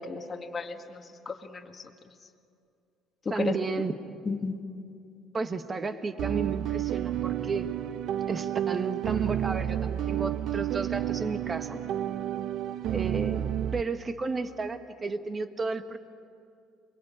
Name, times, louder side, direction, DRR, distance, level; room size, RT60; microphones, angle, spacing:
voice 1, 0.0-1.9 3.3-3.5 4.3-4.6, left 4 dB, 30° left, 2 dB, 1.7 m, -34 dB
voice 2, 3.3-3.9 5.3-7.7 8.3-11.8 12.9-13.4 13.7-16.0, right 4 dB, 25° right, 8 dB, 1.6 m, -32 dB
sound 1, 6.2-13.8, right 11 dB, 60° right, 0.7 m, -30 dB
28.0 x 23.0 x 8.8 m, 2.5 s
cardioid pair, 115°, 0 cm